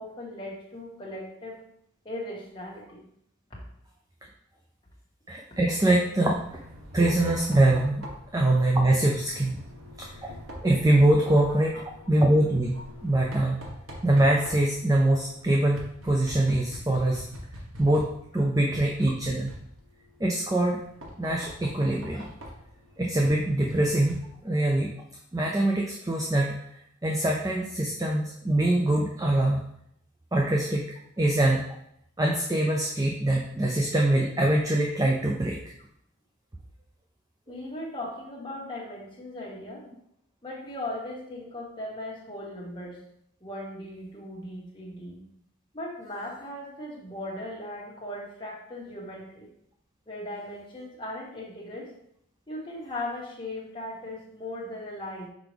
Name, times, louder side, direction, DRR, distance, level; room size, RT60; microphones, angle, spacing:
voice 1, 0.0-1.6 2.1-3.0 11.5-11.8 12.7-12.8 37.5-39.9 40.4-43.0 43.4-45.2 45.7-49.5 50.1-51.9 52.5-55.3, left 1 dB, 25° left, -5 dB, 1.6 m, -38 dB
voice 2, 5.3-6.4 6.9-9.6 10.0-10.3 10.6-11.8 12.1-13.6 14.0-17.2 17.8-19.5 20.2-20.8 21.2-22.3 23.0-24.9 25.3-26.6 27.0-29.7 30.3-31.6 32.2-35.6, right 1 dB, 15° right, 0 dB, 0.5 m, -24 dB
Knock, 6.2-24.6, equal, 90° right, 1.3 m, -44 dB
6.1 x 4.8 x 3.4 m, 0.73 s
head